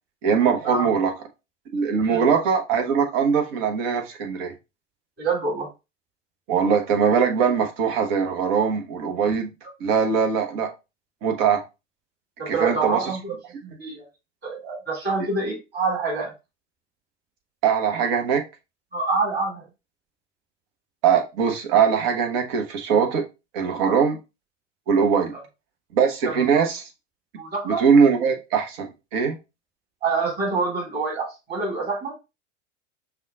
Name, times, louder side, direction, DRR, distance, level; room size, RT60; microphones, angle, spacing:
voice 1, 0.2-1.1 1.7-4.5 6.5-9.5 9.8-10.7 11.2-11.6 12.5-13.1 17.6-18.4 21.0-23.2 23.5-24.2 24.9-25.3 25.9-26.9 27.6-29.4, right 6 dB, 50° right, 1.2 m, -21 dB
voice 2, 5.2-5.7 12.4-13.4 13.6-14.0 14.4-16.3 18.9-19.7 23.8-24.0 26.2-26.6 27.4-27.8 30.0-32.1, right 4 dB, 25° right, 2.9 m, -26 dB
5.6 x 2.3 x 3.6 m
figure-of-eight pair, 85°, 38 cm